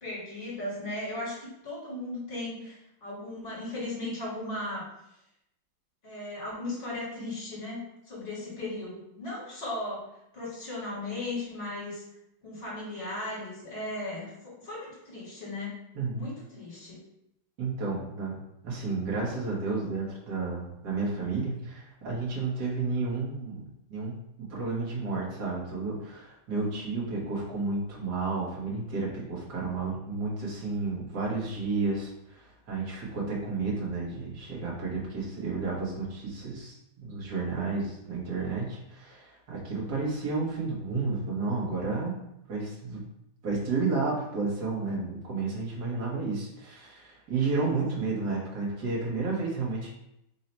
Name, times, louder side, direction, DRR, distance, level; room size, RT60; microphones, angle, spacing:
voice 1, 0.0-4.9 6.0-10.0 10.3-12.0 12.4-15.8 16.1-17.0, left 2 dB, 30° left, -6 dB, 1.9 m, -37 dB
voice 2, 16.0-16.3 17.6-18.3 18.6-36.8 37.0-42.2 42.5-43.0 43.4-49.9, right 3 dB, 55° right, -4 dB, 1.8 m, -31 dB
3.9 x 2.8 x 4.3 m, 0.82 s
omnidirectional pair, 2.1 m